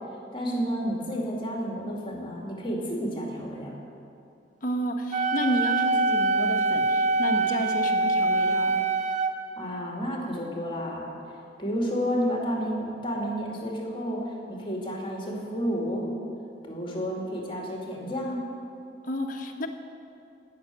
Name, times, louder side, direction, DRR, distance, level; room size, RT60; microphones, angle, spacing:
voice 1, 0.3-3.7 9.6-11.1 11.6-16.2 16.6-18.5, equal, 30° left, -1 dB, 2.4 m, -31 dB
voice 2, 4.6-8.8 19.0-19.7, equal, 50° left, 2 dB, 1.3 m, -30 dB
Wind instrument woodwind instrument, 5.1-9.3, right 3 dB, 45° right, 0.8 m, -24 dB
17.0 x 6.6 x 9.2 m, 2.6 s
head